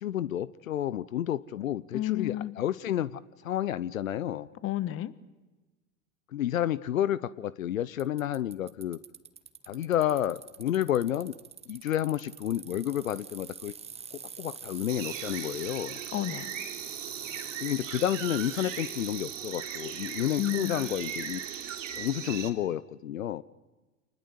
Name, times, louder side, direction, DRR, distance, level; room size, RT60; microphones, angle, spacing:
voice 1, 0.0-4.5 6.3-9.0 9.7-11.3 11.7-13.7 14.1-16.0 17.6-21.4 21.9-23.4, left 11 dB, 80° left, 19 dB, 0.8 m, -30 dB
voice 2, 1.9-2.5 4.6-5.1 16.1-16.5 20.4-20.8, left 15 dB, 35° left, 16 dB, 1.3 m, -31 dB
Bicycle, 8.0-22.1, right 6 dB, 15° right, 1.2 m, -45 dB
sound 1, 14.9-22.5, right 8 dB, 65° right, 3.2 m, -38 dB
27.5 x 20.5 x 8.3 m, 1.2 s
hypercardioid pair, 100°, 40 cm